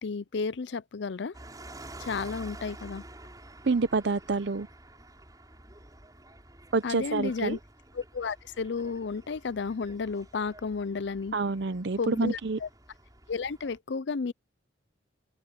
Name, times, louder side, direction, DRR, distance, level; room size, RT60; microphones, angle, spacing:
voice 1, 0.0-1.3 2.0-3.0 6.8-7.6 7.9-11.3 12.0-12.7 13.3-14.3, left 5 dB, 65° left, 0.5 m, -32 dB
sound 1, 1.3-13.8, right 1 dB, 20° right, 6.1 m, -49 dB
voice 2, 3.6-4.7 6.7-7.6 11.3-12.6, right 3 dB, 60° right, 0.6 m, -27 dB
open air
head